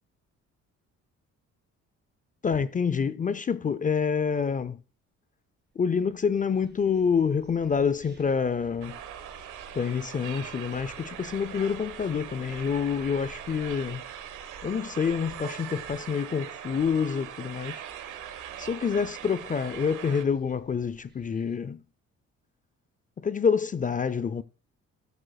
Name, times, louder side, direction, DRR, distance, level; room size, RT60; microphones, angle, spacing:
voice 1, 2.4-4.8 5.8-9.0 9.7-14.0 14.6-17.8 18.6-21.8 23.2-24.4, left 6 dB, 25° left, 0.4 m, -27 dB
sound 1, 5.9-21.6, right 1 dB, 35° right, 3.2 m, -54 dB
sound 2, 8.8-20.2, right 10 dB, 90° right, 1.2 m, -41 dB
14.0 x 7.7 x 2.3 m
cardioid pair, 90°, 30 cm